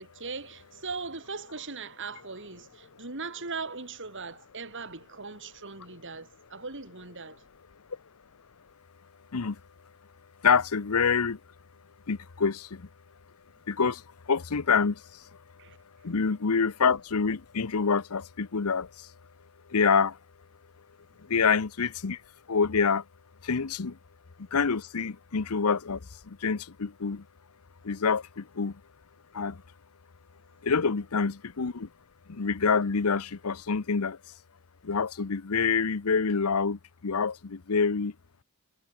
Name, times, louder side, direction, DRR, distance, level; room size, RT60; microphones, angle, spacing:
voice 1, 0.0-7.4 15.6-15.8, right 4 dB, 55° right, 4.2 m, -39 dB
voice 2, 10.4-11.4 12.1-12.9 13.7-15.2 16.0-19.1 19.7-20.2 21.2-22.2 22.5-23.0 23.4-24.0 24.4-27.2 27.8-28.8 29.3-29.6 30.6-31.9 32.3-34.2 34.8-38.1, left 5 dB, 75° left, 0.8 m, -27 dB
head